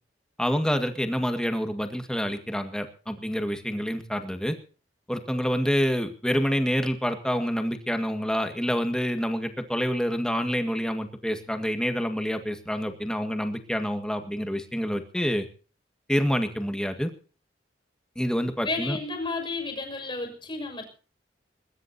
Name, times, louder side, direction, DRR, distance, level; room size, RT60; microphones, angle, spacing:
voice 1, 0.4-4.6 5.1-15.5 16.1-17.1 18.2-19.0, equal, 5° left, 6 dB, 1.9 m, -27 dB
voice 2, 18.6-20.8, left 3 dB, 25° left, 4 dB, 6.3 m, -32 dB
21.0 x 20.5 x 2.9 m, 0.38 s
head